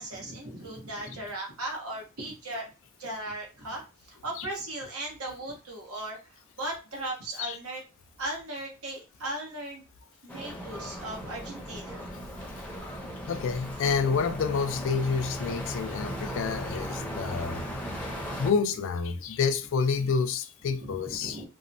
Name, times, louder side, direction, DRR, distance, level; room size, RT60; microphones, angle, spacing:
voice 1, 0.0-2.7 3.0-7.8 8.2-9.8 10.2-12.1 20.8-21.5, right 1 dB, 85° right, 1.1 m, -37 dB
sound 1, 10.3-18.5, equal, 5° left, 0.6 m, -37 dB
voice 2, 13.3-17.7 18.4-21.4, left 5 dB, 60° left, 0.3 m, -28 dB
2.9 x 2.1 x 2.6 m
head